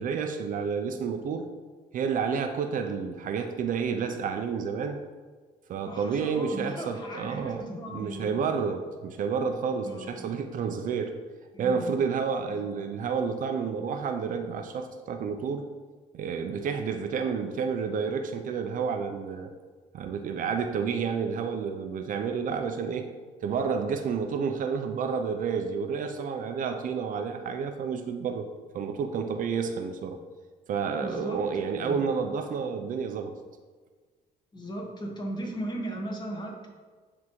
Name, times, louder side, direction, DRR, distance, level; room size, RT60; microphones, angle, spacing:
voice 1, 0.0-1.5 1.9-5.0 5.7-11.1 11.6-15.7 16.1-19.5 19.9-23.1 23.4-28.5 28.7-30.2 30.7-33.4, right 6 dB, 55° right, 6 dB, 0.5 m, -30 dB
voice 2, 5.8-8.3 9.8-10.3 11.5-11.9 12.5-12.7 31.0-32.1 34.5-36.7, right 1 dB, 25° left, 1 dB, 1.2 m, -37 dB
9.6 x 3.6 x 3.1 m, 1.4 s
cardioid pair, 110°, 17 cm